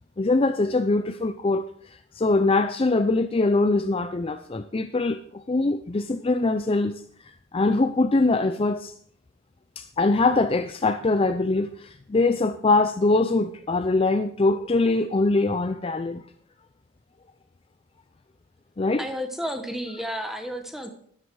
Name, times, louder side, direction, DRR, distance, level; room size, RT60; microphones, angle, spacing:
voice 1, 0.2-6.9 7.2-8.9 9.8-16.2 18.8-19.1, left 3 dB, 25° left, 0.4 m, -23 dB
voice 2, 19.0-20.9, equal, ahead, 1.3 m, -32 dB
13.5 x 11.0 x 4.7 m
head